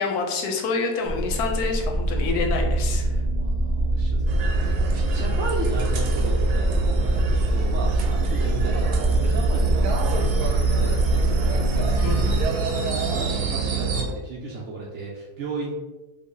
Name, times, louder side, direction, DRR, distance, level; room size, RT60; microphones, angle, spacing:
voice 1, 0.0-3.1 12.0-12.6, left 4 dB, 80° left, 2 dB, 1.1 m, -27 dB
sound 1, 1.1-12.5, right 1 dB, 40° left, 0.6 m, -23 dB
voice 2, 2.9-11.6 12.9-15.7, right 2 dB, 65° right, -3 dB, 0.7 m, -35 dB
sound 2, 4.3-14.0, right 4 dB, 85° right, 1.2 m, -28 dB
3.6 x 2.0 x 3.7 m, 1.1 s
omnidirectional pair, 1.7 m